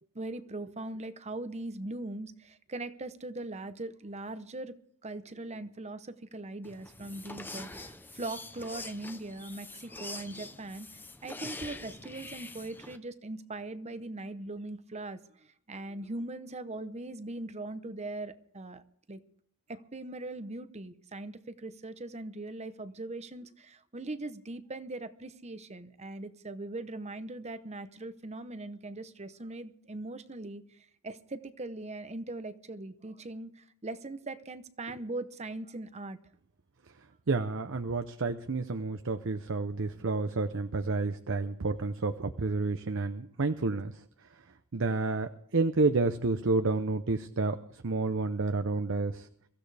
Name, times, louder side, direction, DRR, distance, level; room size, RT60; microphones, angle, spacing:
voice 1, 0.1-4.8 5.0-18.8 19.1-19.2 19.7-36.2, right 2 dB, 30° right, 12 dB, 0.8 m, -40 dB
sound 1, 6.6-13.0, left 2 dB, 10° left, 0.7 m, -45 dB
voice 2, 37.3-44.0 44.7-49.3, right 3 dB, 60° right, 9 dB, 0.7 m, -30 dB
23.0 x 15.0 x 3.4 m, 0.65 s
head